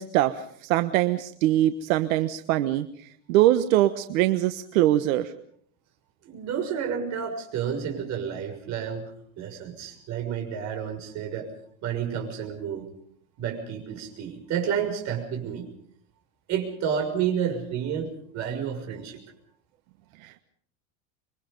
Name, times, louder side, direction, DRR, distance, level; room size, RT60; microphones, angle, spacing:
voice 1, 0.0-5.3 20.2-20.4, right 14 dB, 85° right, 10 dB, 1.3 m, -23 dB
voice 2, 6.2-9.1 9.4-11.5 11.8-12.9 13.4-15.7 16.5-19.2, right 8 dB, 45° right, 4 dB, 6.4 m, -30 dB
27.0 x 23.5 x 5.3 m, 0.63 s
supercardioid pair, 160°, 40 cm